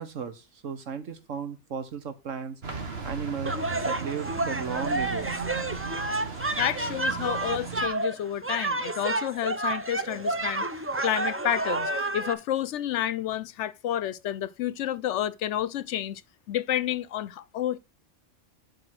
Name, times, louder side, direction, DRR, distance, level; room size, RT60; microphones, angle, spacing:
voice 1, 0.0-2.6 3.0-3.5 3.8-5.3, right 7 dB, 80° right, 1.6 m, -35 dB
sound 1, 2.6-7.9, right 4 dB, 55° right, 1.8 m, -36 dB
Nigeria School Yard, 3.5-12.3, right 2 dB, 20° right, 0.4 m, -30 dB
voice 2, 6.4-10.6 11.0-16.2 16.5-17.8, left 11 dB, 70° left, 0.9 m, -30 dB
7.8 x 4.8 x 5.9 m
omnidirectional pair, 1.3 m